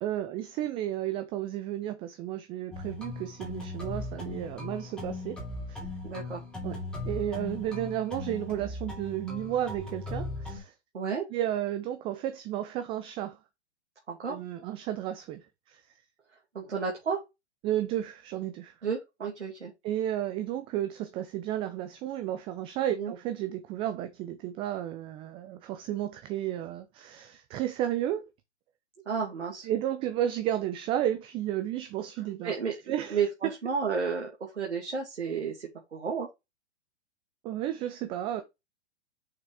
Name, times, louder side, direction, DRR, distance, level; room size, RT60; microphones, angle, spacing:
voice 1, 0.0-5.8 6.6-10.7 11.3-13.4 14.3-15.8 17.6-18.7 19.8-28.2 29.6-33.6 37.4-38.4, right 12 dB, 15° right, 0.4 m, -33 dB
sound 1, 2.7-10.6, left 2 dB, ahead, 2.7 m, -38 dB
voice 2, 6.0-6.4 10.9-11.2 14.1-14.4 16.5-17.2 18.8-19.7 22.9-23.1 29.1-29.7 32.4-36.3, right 6 dB, 80° right, 2.4 m, -32 dB
6.5 x 5.4 x 3.4 m
hypercardioid pair, 120°, 34 cm